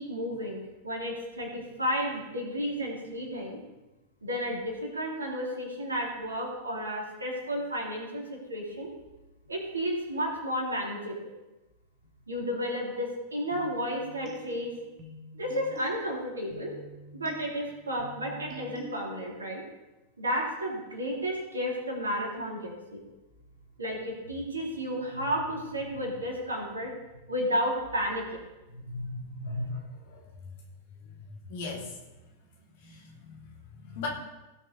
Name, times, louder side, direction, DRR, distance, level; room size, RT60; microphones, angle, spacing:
voice 1, 0.0-3.6 4.2-8.9 9.5-11.2 12.3-14.7 15.3-16.7 17.1-19.6 20.2-23.0 23.8-26.9 27.3-28.4 28.7-29.7, equal, 75° right, -1 dB, 3.7 m, -32 dB
sound 1, 13.5-19.5, right 1 dB, 35° right, 2.1 m, -47 dB
voice 2, 31.2-31.9 32.8-33.4 33.7-34.1, left 5 dB, 55° left, -2 dB, 3.5 m, -39 dB
18.0 x 7.1 x 4.2 m, 1.0 s
figure-of-eight pair, 90°, 0 cm